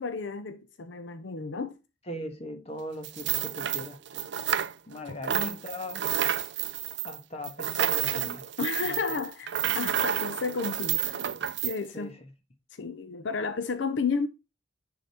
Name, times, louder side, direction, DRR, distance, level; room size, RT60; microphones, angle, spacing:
voice 1, 0.0-1.8 8.6-11.3 11.6-12.2 12.7-14.3, left 4 dB, 65° left, 0.6 m, -32 dB
voice 2, 2.1-4.3 4.9-6.0 7.0-8.5 8.9-9.0 11.9-12.2, left 1 dB, 30° left, 1.4 m, -39 dB
sound 1, 3.0-5.0 5.2-11.8, right 10 dB, 60° right, 0.5 m, -30 dB
10.0 x 3.9 x 4.3 m
head